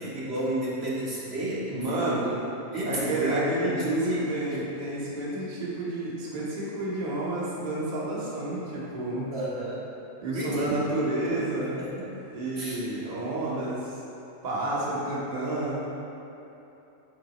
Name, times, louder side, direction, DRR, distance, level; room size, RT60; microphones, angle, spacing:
voice 1, 0.0-4.2 9.3-9.8 10.3-10.8 11.2-11.4 11.8-12.1 12.5-12.8 13.1-13.2, right 1 dB, 50° right, -7 dB, 1.3 m, -32 dB
voice 2, 1.7-2.2 2.9-4.0 4.3-9.3 10.2-11.8 12.3-13.9 14.4-15.8, right 2 dB, 35° right, -7 dB, 1.0 m, -30 dB
8.0 x 3.3 x 4.2 m, 3.0 s
omnidirectional pair, 1.4 m